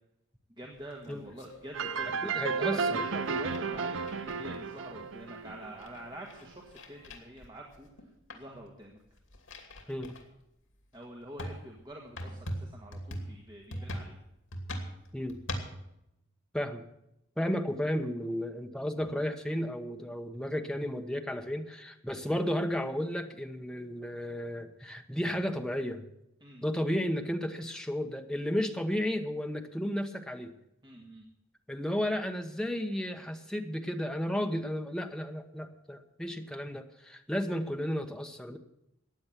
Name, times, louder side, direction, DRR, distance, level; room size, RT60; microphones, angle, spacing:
voice 1, 0.6-9.0 10.9-14.2 18.9-19.1 26.4-26.6 30.8-31.3, right 1 dB, 20° right, 0 dB, 1.7 m, -46 dB
sound 1, 0.8-2.3 3.1-4.7 5.2-5.3 5.5-8.0 8.3-8.6 9.0-10.2 10.8-10.9 11.4-15.8, equal, 75° left, 2.7 m, -41 dB
sound 2, 1.7-6.3, right 5 dB, 65° right, 0.7 m, -33 dB
voice 2, 2.2-3.0 9.9-10.1 13.7-13.8 15.1-15.4 16.5-16.8 17.4-26.0 26.6-30.5 31.7-38.6, equal, 5° left, 4 dB, 1.0 m, -33 dB
15.0 x 9.5 x 7.5 m, 0.84 s
head